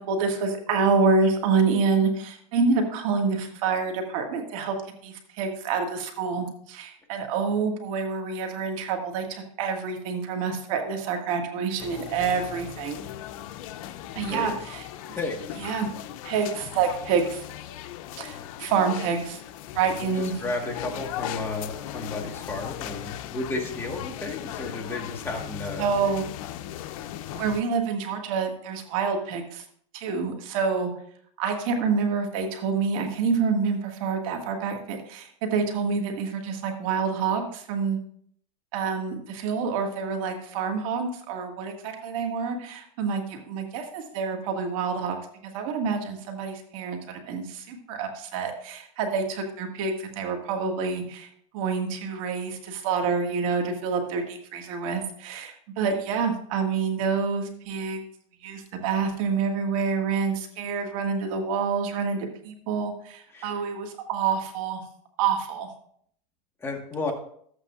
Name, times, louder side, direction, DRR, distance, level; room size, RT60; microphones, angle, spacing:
voice 1, 0.0-4.8 5.0-13.0 14.2-15.1 15.6-15.9 16.2-17.4 18.1-19.4 19.8-20.3 25.8-26.3 27.3-29.6 29.9-30.9 31.4-38.0 38.7-45.2 45.4-51.3 51.5-58.0 58.4-64.8 65.2-65.7, right 5 dB, 65° right, 4 dB, 1.7 m, -27 dB
sound 1, 11.8-27.6, left 12 dB, 70° left, 0.5 m, -38 dB
voice 2, 14.2-14.5 15.1-15.6 20.0-25.8 63.3-63.5 66.6-67.1, left 2 dB, 15° left, 0 dB, 1.4 m, -33 dB
13.5 x 8.3 x 2.4 m, 0.64 s
supercardioid pair, 135°, 18 cm